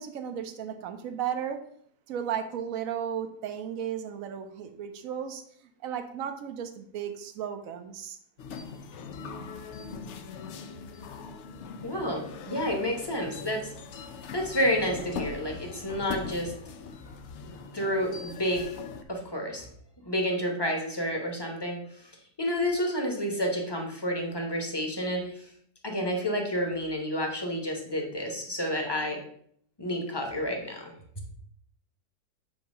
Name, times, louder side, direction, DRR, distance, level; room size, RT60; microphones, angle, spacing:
voice 1, 0.0-1.6 2.1-5.4 5.8-8.2, right 8 dB, 65° right, 7 dB, 1.0 m, -34 dB
sound 1, 8.4-19.0, left 5 dB, 70° left, 0.6 m, -41 dB
voice 2, 11.8-13.7 14.3-16.5 17.7-18.8 19.1-19.7 20.0-21.8 22.4-25.4 25.8-29.2 29.8-30.9, equal, 20° left, 1 dB, 0.8 m, -30 dB
7.8 x 2.8 x 5.3 m, 0.65 s
omnidirectional pair, 1.8 m